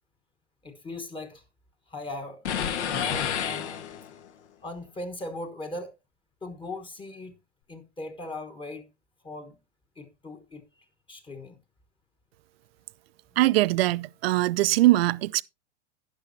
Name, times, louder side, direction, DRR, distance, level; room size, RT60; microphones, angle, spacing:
voice 1, 0.6-1.4 1.9-2.5 2.8-3.8 4.6-5.9 6.4-7.3 7.7-8.9 9.2-9.6 10.0-10.6 11.1-11.6, left 2 dB, 15° left, 1.2 m, -38 dB
sound 1, 2.4-4.3, left 8 dB, 70° left, 1.5 m, -30 dB
voice 2, 13.4-15.4, right 17 dB, 55° right, 0.5 m, -22 dB
11.5 x 10.0 x 2.7 m
hypercardioid pair, 115°, 36 cm